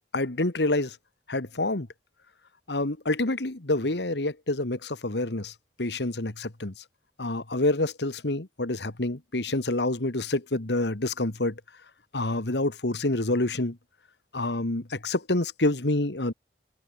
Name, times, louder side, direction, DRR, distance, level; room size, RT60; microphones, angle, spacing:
voice 1, 0.1-1.0 1.3-1.9 2.7-6.7 7.2-11.6 12.1-13.8 14.3-16.3, left 2 dB, 80° left, 1.9 m, -27 dB
head